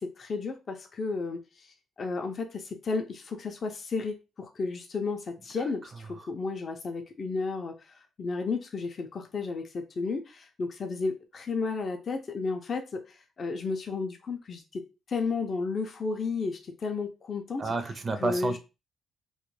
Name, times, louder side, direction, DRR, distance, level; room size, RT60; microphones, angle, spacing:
voice 1, 0.0-14.8 15.1-17.6 18.2-18.6, left 4 dB, 45° left, 0.4 m, -33 dB
voice 2, 17.6-18.6, right 3 dB, 35° right, 0.4 m, -31 dB
2.2 x 2.0 x 3.0 m
cardioid pair, 90°, 0 cm